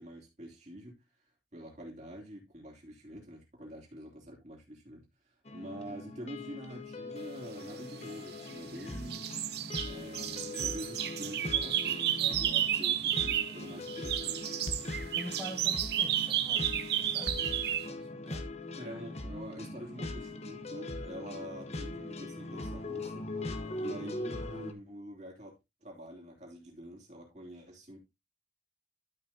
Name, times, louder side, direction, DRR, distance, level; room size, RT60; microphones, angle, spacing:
voice 1, 0.0-9.3 9.8-14.5 18.7-23.3 23.8-25.5 25.8-28.0, equal, 35° right, 3.2 m, -46 dB
sound 1, 5.4-24.7, left 2 dB, 35° left, 1.0 m, -41 dB
sound 2, 8.0-8.8 9.1-13.6 13.9-17.9, right 11 dB, 55° right, 0.7 m, -32 dB
Thump thud, 13.2-13.4 13.7-13.8 14.0-14.1 14.3-14.4 14.6-18.6, left 1 dB, 65° left, 1.0 m, -44 dB
voice 2, 15.2-17.3 17.9-18.4, right 1 dB, ahead, 1.2 m, -46 dB
12.5 x 5.8 x 2.8 m
head